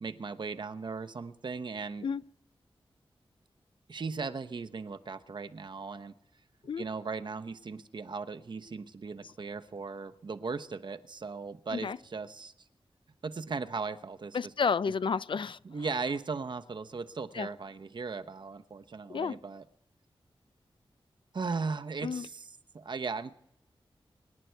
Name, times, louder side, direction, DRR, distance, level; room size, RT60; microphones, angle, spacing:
voice 1, 0.0-2.1 3.9-6.1 6.8-12.5 13.2-14.5 15.6-19.6 21.3-22.5 22.7-23.3, right 4 dB, 55° right, 0.9 m, -37 dB
voice 2, 14.3-15.6 17.3-17.5 19.1-19.4 22.0-22.3, left 5 dB, 60° left, 0.5 m, -31 dB
25.5 x 11.0 x 4.6 m
wide cardioid pair, 120°, 9 cm